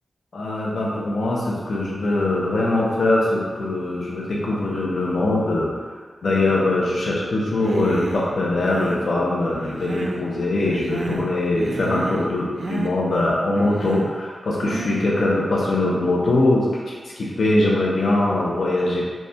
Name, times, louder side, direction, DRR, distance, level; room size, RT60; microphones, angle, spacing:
voice 1, 0.3-5.7 6.2-19.0, left 2 dB, 75° left, -4 dB, 0.6 m, -22 dB
Human voice, 7.6-8.3 8.6-9.1 9.5-10.3 10.6-11.3 11.6-12.3 12.6-12.9 13.5-14.1 14.6-15.1, right 3 dB, 80° right, 0.3 m, -31 dB
4.1 x 2.3 x 3.3 m, 1.5 s
wide cardioid pair, 115°, 0 cm